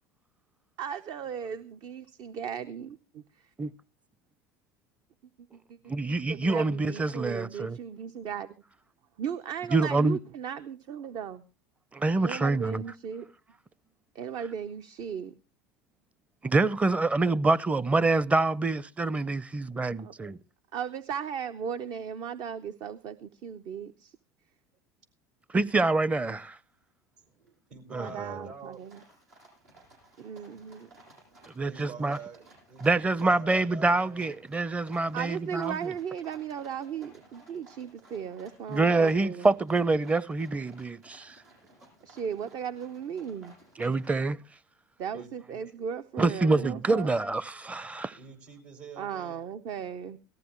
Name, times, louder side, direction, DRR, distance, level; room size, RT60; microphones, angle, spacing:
voice 1, 0.8-3.5 5.5-8.6 9.2-11.4 12.2-13.3 14.1-15.3 20.7-24.2 27.9-29.0 30.2-30.9 35.1-39.5 42.0-43.6 45.0-47.1 49.0-50.2, right 8 dB, 55° right, 0.8 m, -37 dB
voice 2, 5.9-7.8 9.7-10.2 11.9-12.8 16.4-20.3 25.5-26.6 27.9-28.3 31.6-32.2 32.8-35.8 38.7-41.4 43.8-44.4 46.2-48.2, right 3 dB, 15° right, 0.6 m, -26 dB
sound 1, 26.8-26.9 27.3-27.7 28.1-44.2, right 2 dB, 90° right, 7.7 m, -57 dB
voice 3, 27.4-28.8 31.7-34.3 45.1-45.6 48.2-49.4, right 6 dB, 70° right, 5.2 m, -46 dB
18.0 x 14.5 x 3.1 m
hypercardioid pair, 85°, 8 cm